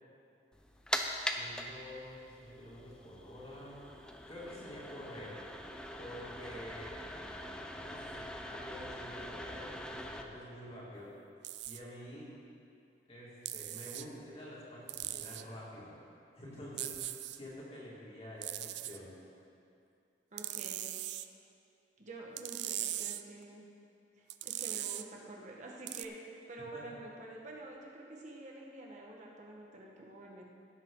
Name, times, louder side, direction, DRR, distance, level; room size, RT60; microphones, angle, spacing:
sound 1, 0.5-10.2, left 1 dB, 5° left, 0.6 m, -42 dB
voice 1, 1.4-3.8 4.3-5.4 6.0-7.0 7.7-11.1 11.7-12.3 13.1-16.0 16.3-19.2 26.6-26.9, left 1 dB, 35° left, -7 dB, 2.6 m, -48 dB
sound 2, 11.4-11.8 13.5-14.1 14.9-15.4 16.8-17.4 18.4-19.0 20.4-21.3 22.4-23.2 24.3-25.0 25.9-26.1, right 14 dB, 70° right, 0.4 m, -39 dB
voice 2, 20.3-20.9 22.0-23.7 24.2-26.2 26.5-30.5, right 2 dB, 45° right, -2 dB, 1.6 m, -48 dB
16.0 x 7.7 x 3.9 m, 2.5 s
head